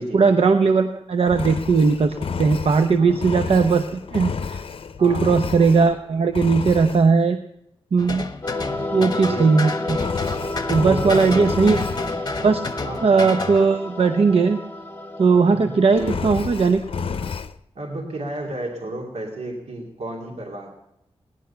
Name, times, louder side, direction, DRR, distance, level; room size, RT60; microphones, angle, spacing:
voice 1, 0.0-3.8 4.1-4.6 5.0-7.4 7.9-8.2 8.9-10.0 10.7-11.8 12.4-12.6 13.0-14.6 15.2-16.8, right 4 dB, 70° right, 7 dB, 0.8 m, -18 dB
Engine, 1.3-6.0 6.3-7.1 9.9-12.1 15.9-17.5, left 5 dB, 60° left, 0.7 m, -30 dB
voice 2, 5.0-5.4 9.2-9.6 10.8-11.6 12.8-13.0 15.5-16.2 17.7-20.7, right 2 dB, 85° right, -1 dB, 2.9 m, -32 dB
sound 1, 8.0-13.7, left 3 dB, 40° left, 1.2 m, -31 dB
sound 2, 8.4-16.3, left 2 dB, 20° left, 1.5 m, -31 dB
19.0 x 11.0 x 5.7 m, 0.81 s
wide cardioid pair, 90°, 10 cm